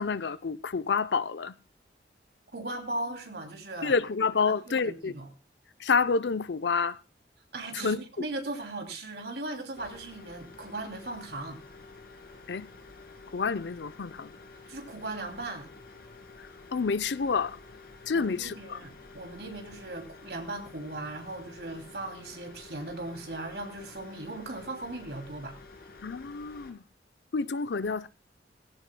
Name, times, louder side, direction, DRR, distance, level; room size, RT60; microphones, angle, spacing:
voice 1, 0.0-1.6 3.8-5.1 5.8-7.0 7.7-8.2 12.5-12.7 13.3-14.3 16.7-17.6 18.1-18.8 26.0-26.8 27.3-28.1, left 5 dB, 80° left, 0.6 m, -28 dB
voice 2, 2.5-4.0 4.4-5.3 7.5-11.6 14.7-15.7 18.1-25.6, right 2 dB, 65° right, 2.8 m, -38 dB
sound 1, 9.8-26.7, left 3 dB, 55° left, 2.2 m, -50 dB
18.0 x 16.0 x 2.2 m
head